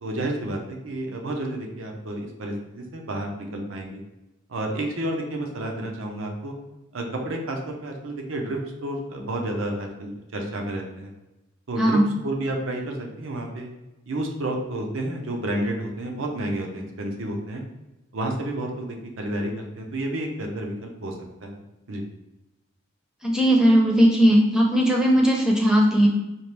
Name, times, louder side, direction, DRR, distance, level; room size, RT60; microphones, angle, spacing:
voice 1, 0.0-4.0 4.5-6.5 6.9-11.1 11.7-13.7 14.1-17.6 18.1-21.6 21.9-22.0, right 1 dB, 80° right, 2 dB, 0.7 m, -30 dB
voice 2, 23.2-26.1, equal, 5° right, -1 dB, 0.6 m, -18 dB
4.3 x 2.5 x 3.3 m, 1.0 s
head